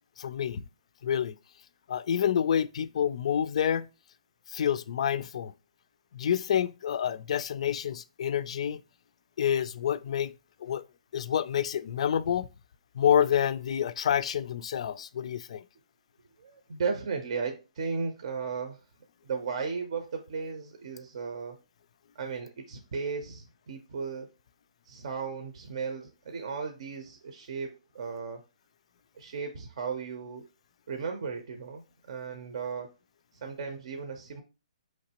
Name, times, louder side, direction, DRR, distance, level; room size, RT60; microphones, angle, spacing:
voice 1, 0.2-0.6 1.0-1.4 1.9-3.9 4.5-5.5 6.1-8.8 9.4-10.3 10.6-10.8 11.1-12.5 13.0-15.6, left 9 dB, 55° left, 0.3 m, -28 dB
voice 2, 16.4-18.8 19.2-21.6 22.1-24.3 24.9-28.4 29.2-30.4 30.9-32.9 33.4-34.4, right 5 dB, 55° right, 0.7 m, -35 dB
4.9 x 3.1 x 2.9 m
hypercardioid pair, 155°, 4 cm